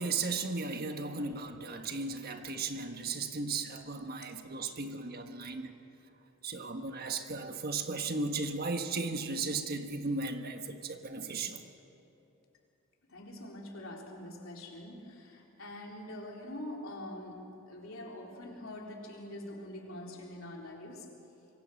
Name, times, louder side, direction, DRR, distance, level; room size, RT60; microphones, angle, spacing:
voice 1, 0.0-5.7 6.4-11.6, right 3 dB, 45° right, 6 dB, 1.4 m, -36 dB
voice 2, 13.1-21.1, left 1 dB, 65° left, -1 dB, 4.0 m, -44 dB
25.5 x 23.0 x 6.5 m, 2.9 s
head